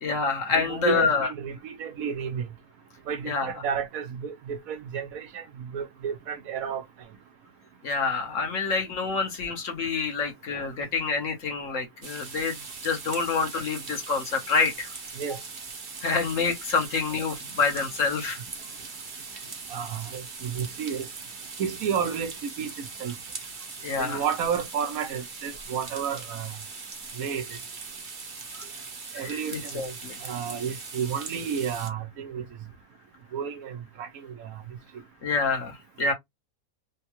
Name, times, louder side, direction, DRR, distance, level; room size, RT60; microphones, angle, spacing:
voice 1, 0.0-1.3 3.3-3.5 7.8-12.6 12.8-14.9 16.0-18.4 23.8-24.2 28.5-28.6 29.2-30.2 35.2-36.1, left 4 dB, 60° left, 1.3 m, -27 dB
voice 2, 0.5-2.4 3.1-6.8 15.2-15.4 19.7-21.0 21.6-22.3 22.6-22.7 23.0-23.1 24.0-26.5 27.2-27.4 29.1-29.9 30.2-32.4 33.3-34.1 34.4-34.5 36.0-36.1, right 7 dB, 70° right, 1.1 m, -31 dB
sound 1, 12.0-31.9, right 4 dB, 40° right, 0.8 m, -40 dB
3.5 x 2.2 x 2.9 m
omnidirectional pair, 1.6 m